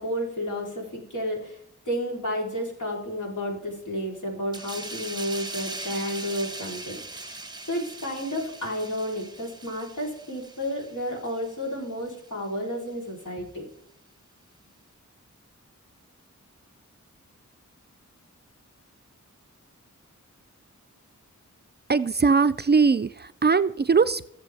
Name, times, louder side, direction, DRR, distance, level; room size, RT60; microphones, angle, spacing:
voice 1, 0.0-1.6 1.9-13.7, equal, 75° left, -2 dB, 3.6 m, -31 dB
sound 1, 4.5-11.7 12.1-12.3, right 2 dB, 15° right, 0.8 m, -40 dB
voice 2, 21.9-24.3, right 5 dB, 35° right, 13 dB, 0.4 m, -21 dB
20.5 x 7.5 x 3.4 m, 0.76 s
wide cardioid pair, 65°, 31 cm